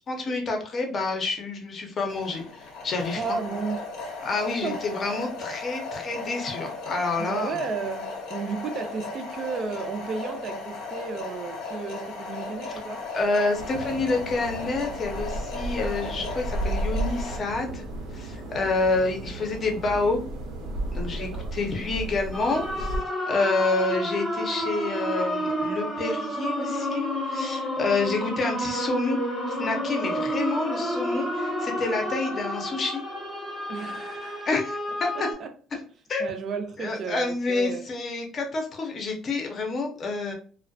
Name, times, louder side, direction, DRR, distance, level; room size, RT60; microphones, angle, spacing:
voice 1, 0.1-3.2 4.2-7.6 12.6-12.7 13.1-17.8 18.1-20.2 20.9-22.9 23.3-29.2 29.5-33.0 34.4-35.3 36.1-36.3 36.8-40.3, left 3 dB, 35° left, 0.6 m, -28 dB
sound 1, 2.1-17.4, left 3 dB, 75° left, 0.7 m, -36 dB
voice 2, 3.1-3.8 4.6-4.8 5.2-5.3 7.2-13.1 21.1-21.5 33.7-34.5 35.1-35.8 36.2-37.8, right 5 dB, 40° right, 0.4 m, -33 dB
sound 2, 13.5-23.0, right 1 dB, 90° right, 0.7 m, -33 dB
sound 3, 22.3-35.3, equal, 5° left, 0.8 m, -30 dB
2.3 x 2.1 x 2.6 m
cardioid pair, 145°, 0 cm